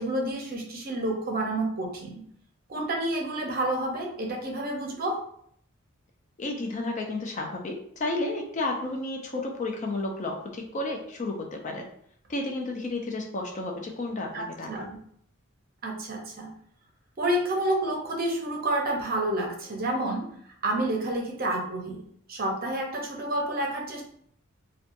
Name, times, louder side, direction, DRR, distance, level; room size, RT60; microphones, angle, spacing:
voice 1, 0.0-2.2 2.7-5.2 9.3-9.4 14.3-15.0 15.8-16.5 17.2-20.3 20.6-24.0, right 1 dB, 45° right, 0 dB, 0.6 m, -29 dB
voice 2, 6.4-11.9 12.3-14.8, left 2 dB, 35° left, 1 dB, 0.4 m, -32 dB
2.7 x 2.2 x 2.5 m, 0.66 s
head